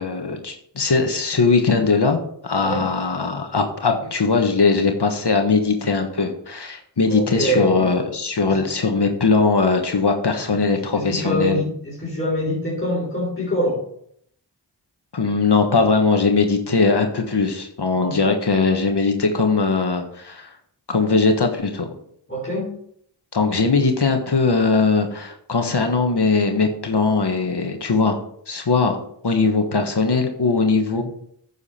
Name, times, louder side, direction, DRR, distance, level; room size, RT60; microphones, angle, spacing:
voice 1, 0.0-11.6 15.1-20.5 20.9-21.9 23.3-28.2 28.5-29.0 29.2-31.0, left 4 dB, 65° left, 4 dB, 1.4 m, -20 dB
voice 2, 7.1-7.9 8.4-8.6 10.9-13.8 18.0-18.2 22.3-22.7 30.9-31.0, left 1 dB, 30° left, -6 dB, 3.8 m, -24 dB
9.6 x 7.1 x 4.3 m, 0.66 s
wide cardioid pair, 45°, 43 cm